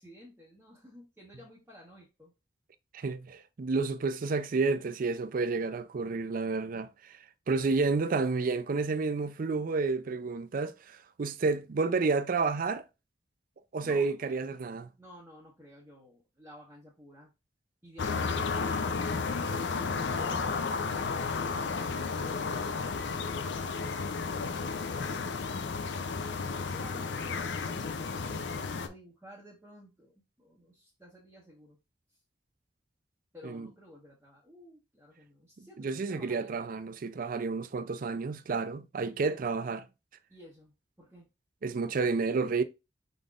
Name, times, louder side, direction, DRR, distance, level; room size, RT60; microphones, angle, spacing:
voice 1, 0.0-2.3 8.9-9.3 13.8-14.6 15.0-17.3 26.3-31.8 33.3-36.6 40.3-40.7 41.0-41.3, equal, 10° right, 1.2 m, -53 dB
voice 2, 2.9-7.2 7.5-12.8 13.7-14.9 33.4-33.7 35.6-39.9 41.6-42.6, right 4 dB, 50° right, 0.4 m, -30 dB
sound 1, 18.0-28.9, left 4 dB, 75° left, 0.5 m, -33 dB
5.2 x 3.9 x 2.4 m
head